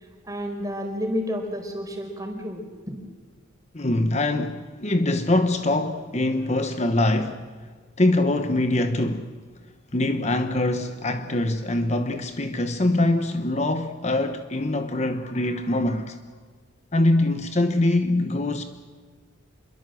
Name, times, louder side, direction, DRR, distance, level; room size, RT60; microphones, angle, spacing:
voice 1, 0.2-3.0, equal, 15° right, 4.5 m, -30 dB
voice 2, 3.7-7.4 8.0-9.3 9.9-16.2 16.9-18.6, left 1 dB, 35° left, 1.0 m, -23 dB
27.0 x 22.5 x 7.8 m
head